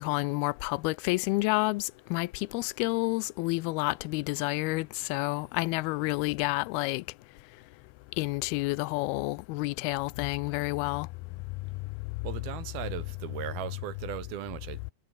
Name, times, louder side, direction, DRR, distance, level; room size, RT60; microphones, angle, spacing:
voice 1, 0.0-7.0 8.2-11.1, left 23 dB, 85° left, 2.5 m, -29 dB
voice 2, 12.2-14.9, right 12 dB, 75° right, 3.6 m, -38 dB
omnidirectional pair, 4.4 m